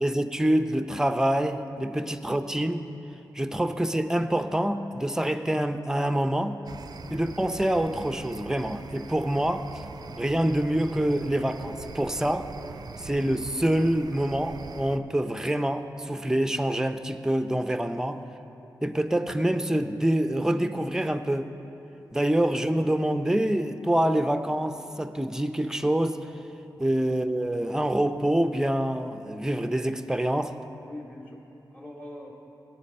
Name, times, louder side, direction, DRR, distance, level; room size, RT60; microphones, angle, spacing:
voice 1, 0.0-2.8 3.3-6.6 7.1-9.7 10.2-12.5 13.0-18.2 18.8-21.5 22.1-26.2 26.8-30.5, right 1 dB, 5° right, 9 dB, 0.5 m, -26 dB
voice 2, 1.7-2.0 5.1-5.3 6.8-7.1 9.9-10.1 12.8-13.1 26.8-26.9 30.8-31.4 31.7-32.3, left 1 dB, 20° left, -2 dB, 2.2 m, -45 dB
sound 1, 6.7-15.0, right 5 dB, 60° right, 0.4 m, -43 dB
17.5 x 6.6 x 4.3 m, 3.0 s
cardioid pair, 70°, 8 cm